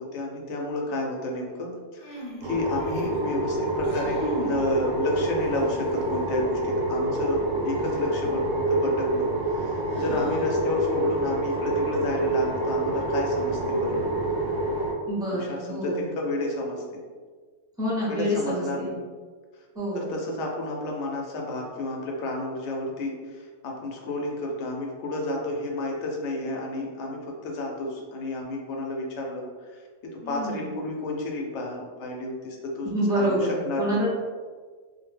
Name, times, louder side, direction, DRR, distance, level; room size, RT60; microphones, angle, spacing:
voice 1, 0.0-14.3 15.3-17.0 18.1-18.9 19.9-33.4 33.6-34.0, left 2 dB, 75° left, 0 dB, 0.9 m, -31 dB
sound 1, 2.0-3.2 3.7-4.6 5.1-6.0 8.0-8.1 9.9-10.7, right 1 dB, 45° left, 0.6 m, -37 dB
sound 2, 2.4-14.9, right 2 dB, 80° right, 1.0 m, -27 dB
voice 2, 15.1-16.0 17.8-18.9 19.7-20.1 30.2-30.6 32.8-34.1, equal, 5° right, -7 dB, 0.5 m, -27 dB
2.4 x 2.1 x 3.2 m, 1.5 s
omnidirectional pair, 1.3 m